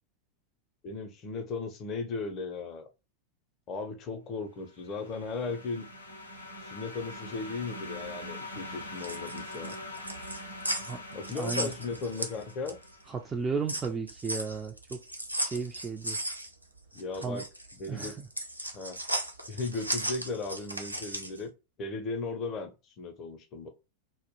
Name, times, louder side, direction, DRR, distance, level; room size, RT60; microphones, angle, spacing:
voice 1, 0.8-2.9 3.7-5.9 6.6-9.8 11.1-12.8 16.9-17.4 17.8-18.1 18.7-19.0 19.5-21.5 21.8-23.7, left 3 dB, 35° left, 0.5 m, -36 dB
sound 1, 4.7-13.3, left 1 dB, 85° left, 0.5 m, -43 dB
sound 2, 8.8-12.9 13.3-21.4, right 1 dB, 90° right, 0.4 m, -36 dB
voice 2, 11.3-11.7 13.1-15.0 15.4-16.2 17.2-17.4 17.9-18.3, right 5 dB, 20° right, 0.3 m, -34 dB
2.2 x 2.0 x 2.9 m
figure-of-eight pair, 90°, 0 cm